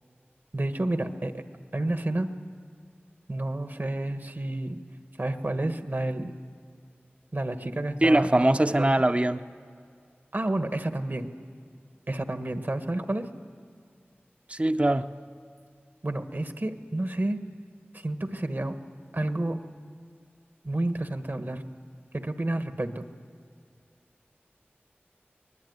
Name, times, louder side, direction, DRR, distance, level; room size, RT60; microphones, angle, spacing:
voice 1, 0.5-1.4 1.7-2.3 3.3-4.8 5.2-6.3 7.3-8.9 10.3-11.3 12.1-13.3 16.0-17.4 17.9-18.8 19.1-19.6 20.6-21.6 22.1-23.1, right 1 dB, 55° right, 8 dB, 1.4 m, -30 dB
voice 2, 8.0-9.4 14.5-15.1, right 1 dB, 30° right, 9 dB, 0.7 m, -22 dB
23.5 x 19.5 x 9.5 m, 2.2 s
wide cardioid pair, 45°, 4 cm